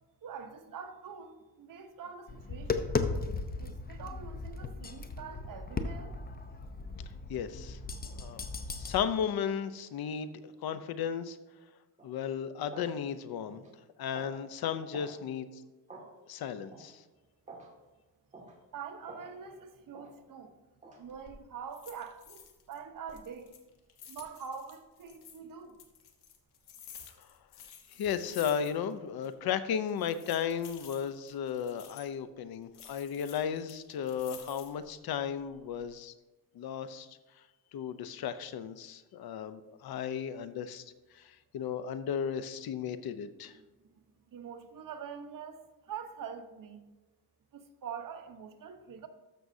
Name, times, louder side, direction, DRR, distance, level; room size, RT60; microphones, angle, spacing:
voice 1, 0.2-2.9 3.6-6.2 18.7-20.5 21.0-23.5 24.1-25.7 43.8-44.0 44.3-46.9 47.5-49.1, right 7 dB, 55° right, 6 dB, 1.0 m, -45 dB
Tap, 2.3-9.0, left 4 dB, 25° left, 0.7 m, -36 dB
voice 2, 7.3-7.8 8.1-8.4 8.7-11.4 12.0-13.6 14.0-15.6 16.3-17.0 27.9-36.1 36.5-37.2 37.7-40.8 41.1-43.5, left 8 dB, 70° left, 12 dB, 0.7 m, -35 dB
sound 1, 12.0-12.1 12.7-13.0 13.5-13.7 14.1-14.4 14.9-15.2 15.9-16.1 16.7-16.9 17.5-17.7 18.3-18.6 19.1-19.3 19.9-20.1 20.8-21.0, right 3 dB, 20° right, 1.9 m, -48 dB
sound 2, 21.0-21.4 21.7-22.8 23.1-25.4 25.8-29.0 29.2-29.3 29.9-32.1 32.7-34.9 35.4-35.9, left 8 dB, 85° left, 1.3 m, -52 dB
13.0 x 6.2 x 2.7 m, 1.2 s
cardioid pair, 105°, 39 cm